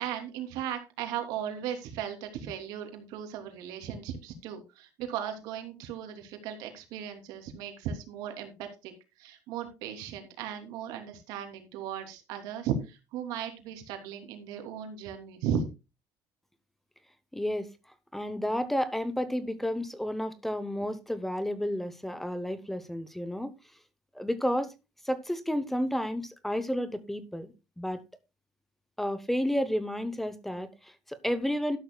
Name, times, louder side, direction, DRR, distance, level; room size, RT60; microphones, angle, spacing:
voice 1, 0.0-8.9 9.2-15.7, right 8 dB, 85° right, 3.1 m, -36 dB
voice 2, 17.3-17.7 18.1-23.5 24.1-24.7 25.0-28.0 29.0-31.8, equal, 5° left, 0.9 m, -31 dB
12.5 x 11.5 x 2.3 m
cardioid pair, 165°, 7 cm